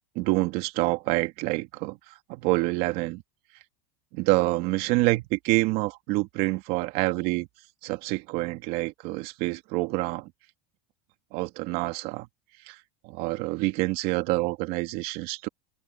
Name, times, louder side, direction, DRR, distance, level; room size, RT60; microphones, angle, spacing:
voice 1, 0.1-3.2 4.1-7.5 7.8-10.3 11.3-12.3 12.7-12.8 13.0-15.5, right 21 dB, 55° right, 2.5 m, -27 dB
supercardioid pair, 135°, 19 cm